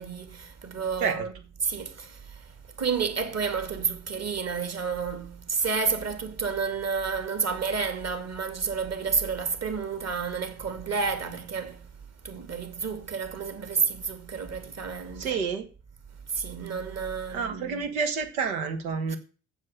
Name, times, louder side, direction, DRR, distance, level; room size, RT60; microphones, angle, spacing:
voice 1, 0.0-1.3 1.6-11.9 12.2-15.4 16.3-17.9 19.1-19.2, right 5 dB, 35° right, 2.5 m, -30 dB
voice 2, 15.2-15.7 17.3-19.1, right 5 dB, 85° right, 1.6 m, -29 dB
7.4 x 6.6 x 7.9 m
hypercardioid pair, 55°, 42 cm